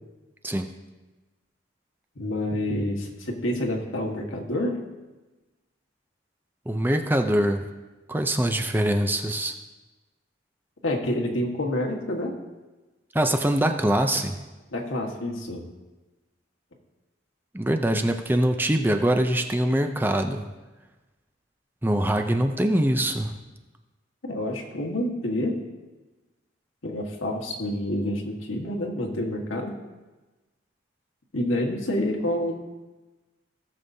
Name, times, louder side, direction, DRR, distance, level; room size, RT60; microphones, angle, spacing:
voice 1, 2.1-4.8 10.8-12.3 14.7-15.6 24.2-25.6 26.8-29.7 31.3-32.6, left 1 dB, 90° left, 0 dB, 1.5 m, -28 dB
voice 2, 6.7-7.7 8.1-9.5 13.1-14.4 17.5-20.5 21.8-23.4, right 1 dB, 10° right, 5 dB, 0.4 m, -23 dB
17.0 x 6.9 x 2.7 m, 1.2 s
head